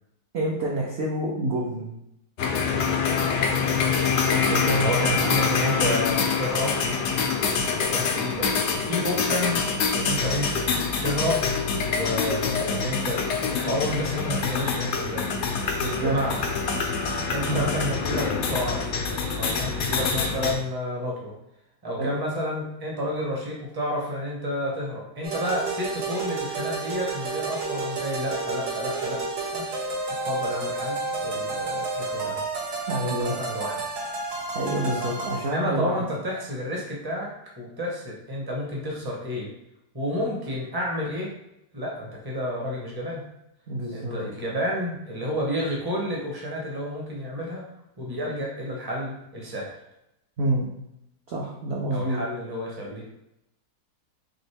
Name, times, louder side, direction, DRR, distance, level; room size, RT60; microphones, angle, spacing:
voice 1, 0.3-1.9 4.3-5.3 15.8-16.2 17.5-17.7 22.0-22.1 32.9-33.4 34.5-36.1 43.7-44.3 50.4-50.7 51.3-52.2, right 1 dB, 60° right, -3 dB, 0.7 m, -28 dB
sound 1, 2.4-20.5, left 5 dB, 75° left, 0.6 m, -25 dB
voice 2, 4.7-6.8 7.8-11.5 11.7-15.2 16.0-16.4 17.3-18.8 19.4-21.3 21.8-29.2 29.5-29.6 30.2-32.4 33.0-33.9 34.8-35.2 35.5-39.5 39.9-41.3 41.7-43.2 43.9-47.7 48.0-49.7 51.9-53.0, equal, 20° right, -2 dB, 0.7 m, -30 dB
sound 2, 25.2-35.5, right 3 dB, 75° right, 1.4 m, -31 dB
4.2 x 2.9 x 3.3 m, 0.83 s
omnidirectional pair, 1.8 m